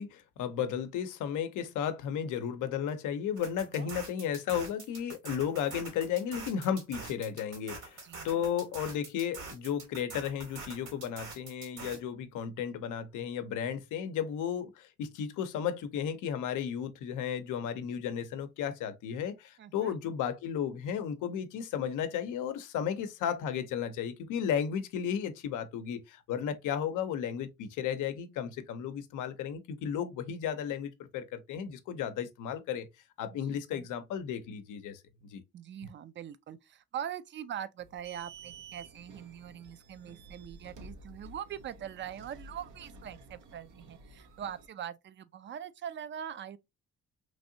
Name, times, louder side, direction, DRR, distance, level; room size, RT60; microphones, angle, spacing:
voice 1, 0.0-32.9 33.2-35.0 35.3-35.4, left 8 dB, 85° left, 0.6 m, -34 dB
sound 1, 3.4-12.0, right 3 dB, 70° right, 1.9 m, -45 dB
voice 2, 8.0-8.5 19.6-19.9 33.3-33.9 35.5-46.6, right 9 dB, 40° right, 0.4 m, -42 dB
sound 2, 37.8-44.7, right 3 dB, 85° right, 0.8 m, -52 dB
3.2 x 2.7 x 2.6 m
cardioid pair, 90°, 30 cm